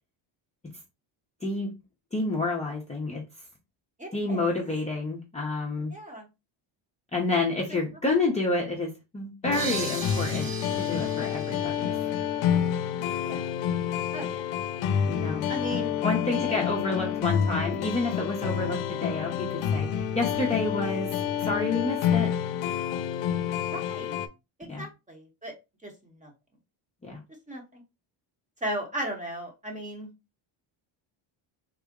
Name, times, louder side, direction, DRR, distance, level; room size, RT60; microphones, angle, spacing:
voice 1, 1.4-1.7 2.1-3.2 4.1-5.9 7.1-10.5 10.8-11.9 15.1-15.4 16.0-21.2 21.4-22.3 24.6-24.8 27.0-27.2, left 3 dB, 15° left, -3 dB, 0.6 m, -29 dB
voice 2, 4.0-4.5 5.9-6.3 13.0-13.5 14.1-14.6 15.5-16.0 16.3-16.8 18.6-18.7 23.7-24.2 24.6-25.5 25.8-26.3 27.5-27.8 28.6-30.1, right 1 dB, 15° right, 1 dB, 0.9 m, -37 dB
sound 1, 9.4-24.3, left 8 dB, 70° left, 0.6 m, -28 dB
sound 2, 9.5-13.1, right 4 dB, 45° right, 1.0 m, -38 dB
3.7 x 2.1 x 3.5 m, 0.25 s
cardioid pair, 145°, 49 cm